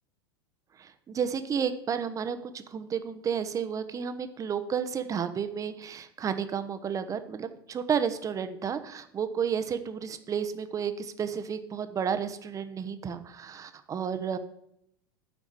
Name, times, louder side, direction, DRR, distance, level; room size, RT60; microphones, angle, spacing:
voice 1, 0.8-14.4, right 7 dB, 25° right, 10 dB, 0.9 m, -32 dB
9.5 x 4.8 x 7.8 m, 0.76 s
figure-of-eight pair, 85°, 13 cm